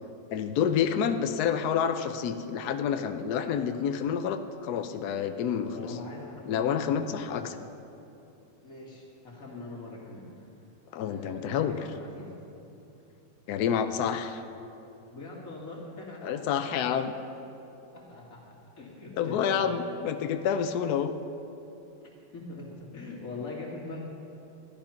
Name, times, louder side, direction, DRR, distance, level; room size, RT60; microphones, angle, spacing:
voice 1, 0.3-5.9 6.5-7.6 10.9-11.8 13.5-14.4 16.2-17.1 19.2-21.1, left 8 dB, 85° left, 8 dB, 0.8 m, -28 dB
voice 2, 5.7-7.4 8.6-10.5 11.0-12.3 15.1-16.5 17.9-19.8 22.3-24.0, left 3 dB, 40° left, -3 dB, 2.7 m, -42 dB
13.0 x 12.0 x 5.8 m, 2.8 s
omnidirectional pair, 2.4 m